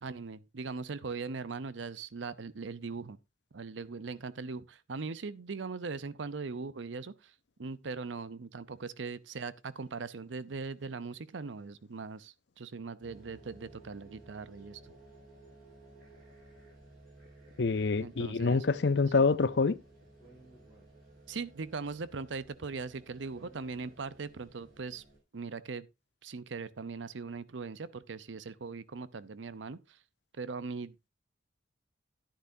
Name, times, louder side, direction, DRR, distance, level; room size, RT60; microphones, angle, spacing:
voice 1, 0.0-3.2 3.5-14.9 18.0-18.7 19.1-19.2 21.3-25.0 25.3-25.9 26.2-30.0 30.3-30.9, right 4 dB, 80° right, 0.6 m, -40 dB
sound 1, 13.0-25.2, right 2 dB, 55° right, 5.9 m, -57 dB
voice 2, 17.6-19.8, left 4 dB, 65° left, 0.6 m, -26 dB
Speech, 19.5-21.4 22.7-24.4, right 1 dB, 25° right, 7.7 m, -60 dB
11.0 x 10.0 x 2.7 m
head